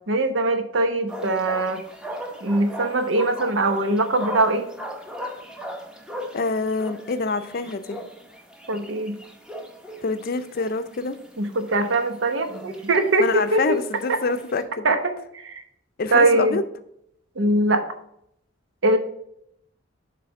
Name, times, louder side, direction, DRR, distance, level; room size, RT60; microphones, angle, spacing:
voice 1, 0.1-1.8 2.4-4.6 8.7-9.1 11.4-13.6 14.1-14.2 14.8-15.6 16.1-16.6 17.4-17.8 18.8-19.0, right 2 dB, 90° right, 7 dB, 0.9 m, -22 dB
sound 1, 1.1-14.6, equal, 5° right, 0.7 m, -38 dB
voice 2, 6.3-8.0 10.0-11.2 13.2-14.9 16.0-16.6, left 3 dB, 50° left, 10 dB, 0.5 m, -26 dB
7.7 x 3.3 x 5.8 m, 0.75 s
head